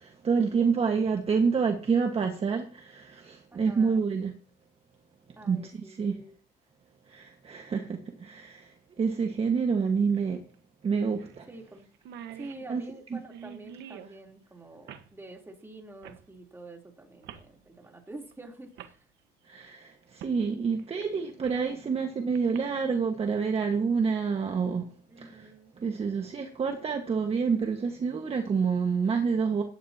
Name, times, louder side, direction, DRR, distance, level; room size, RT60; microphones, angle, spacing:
voice 1, 0.2-4.3 5.5-6.1 7.1-8.6 9.0-10.4 10.8-11.4 12.7-12.8 19.5-19.9 20.2-24.8 25.2-25.3 25.8-29.6, right 5 dB, 35° right, 1.7 m, -27 dB
voice 2, 3.5-4.1 5.4-6.3 11.5-11.9 12.4-19.0 25.1-26.2, right 2 dB, 15° right, 3.5 m, -47 dB
sound 1, 8.2-8.3 10.1-10.2 10.5-10.6 11.2-11.4 11.7-11.8 11.9-14.1 14.9-15.1 16.0-16.2 17.2-17.5 18.3-18.4 18.8-19.0 20.2-20.4 20.8-21.7 22.4-22.6, right 9 dB, 80° right, 1.5 m, -46 dB
17.0 x 11.5 x 2.9 m
cardioid pair, 110°, 17 cm